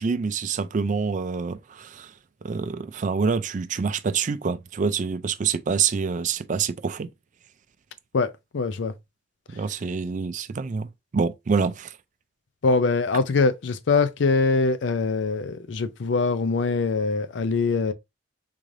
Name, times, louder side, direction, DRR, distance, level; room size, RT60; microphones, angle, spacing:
voice 1, 0.0-2.1 2.4-7.1 9.5-11.9, right 5 dB, 40° right, 0.4 m, -26 dB
voice 2, 8.1-8.9 12.6-17.9, left 4 dB, 70° left, 0.5 m, -23 dB
3.7 x 3.2 x 2.6 m
head